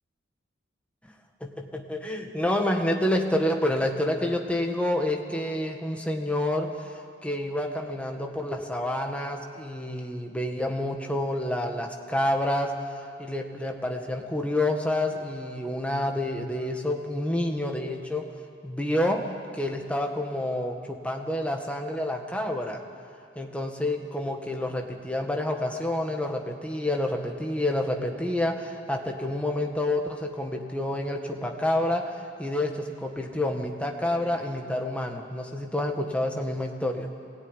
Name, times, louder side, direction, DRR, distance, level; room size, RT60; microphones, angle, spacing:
voice 1, 1.4-6.9 7.2-12.8 13.2-18.3 18.6-22.8 23.4-32.1 32.4-37.1, left 1 dB, 5° left, 2 dB, 1.7 m, -28 dB
22.5 x 17.5 x 10.0 m, 2.4 s
head